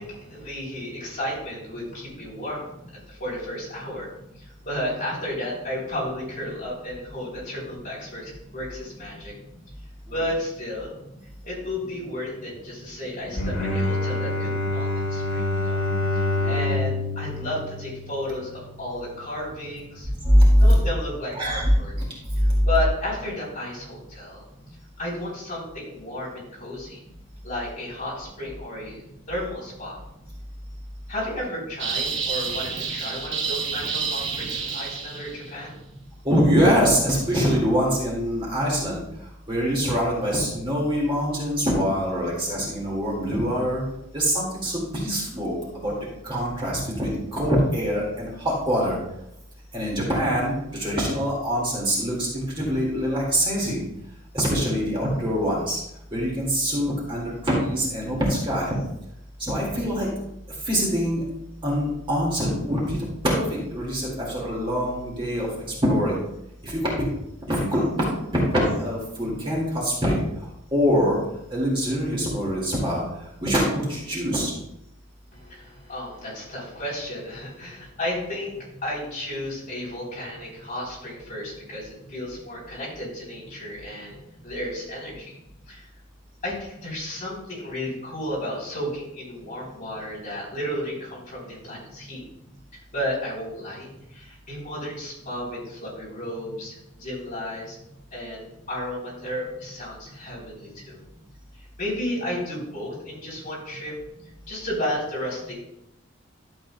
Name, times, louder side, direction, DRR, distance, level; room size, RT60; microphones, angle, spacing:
voice 1, 0.0-2.6 2.9-4.1 4.4-9.3 10.1-10.9 11.4-15.8 16.1-20.1 20.6-21.9 22.6-24.4 25.0-27.0 27.4-30.0 31.1-35.7 75.3-84.2 84.4-85.3 85.7-85.9 86.4-92.2 92.9-97.8 98.1-101.0 101.6-104.0 104.5-105.6, left 1 dB, 40° left, -5 dB, 3.4 m, -33 dB
Bowed string instrument, 13.3-18.6, left 2 dB, 75° left, 2.4 m, -27 dB
voice 2, 20.2-20.7 21.4-21.7 22.4-22.7 36.2-39.0 39.5-43.8 44.1-45.9 46.2-49.0 49.7-53.8 54.3-55.8 56.1-58.7 59.4-60.1 60.7-61.2 61.6-63.4 63.7-65.5 65.8-66.2 66.6-66.8 67.5-67.8 68.5-70.2 70.7-71.2 71.5-73.0 73.4-74.5, equal, 25° right, -4 dB, 2.0 m, -23 dB
sound 1, 31.8-35.5, right 5 dB, 60° right, 1.1 m, -29 dB
12.0 x 7.3 x 2.2 m, 0.82 s
head